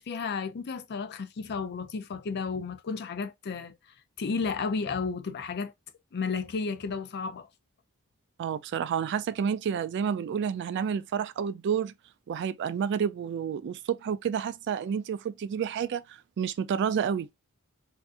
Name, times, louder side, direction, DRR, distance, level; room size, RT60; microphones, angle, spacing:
voice 1, 0.0-3.7 4.2-5.7 6.1-7.5, left 5 dB, 50° left, 0.4 m, -32 dB
voice 2, 8.4-11.9 12.3-17.3, right 7 dB, 55° right, 0.3 m, -30 dB
3.5 x 2.6 x 2.4 m
head